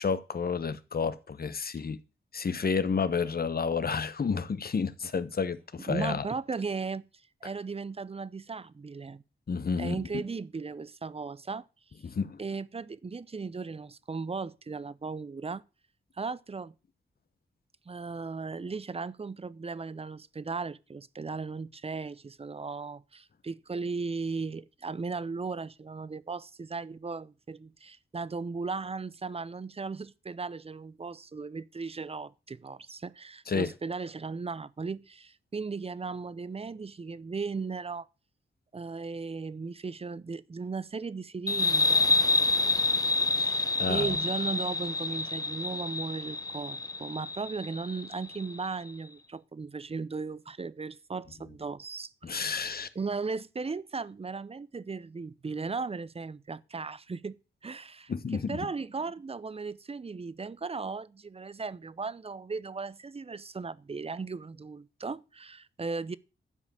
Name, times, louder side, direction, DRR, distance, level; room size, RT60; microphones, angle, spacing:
voice 1, 0.0-2.0 2.3-6.2 9.5-10.2 12.0-12.4 33.5-33.7 43.8-44.2 52.2-52.9 58.1-58.7, left 5 dB, 50° left, 1.0 m, -30 dB
voice 2, 5.9-7.1 7.4-9.2 9.8-11.7 12.4-15.7 16.2-16.7 17.9-38.1 38.7-42.1 43.4-52.6 53.0-66.2, right 4 dB, 30° right, 0.6 m, -37 dB
sound 1, 41.5-48.7, left 2 dB, 15° left, 0.7 m, -28 dB
12.0 x 5.1 x 7.4 m
cardioid pair, 65°, 20 cm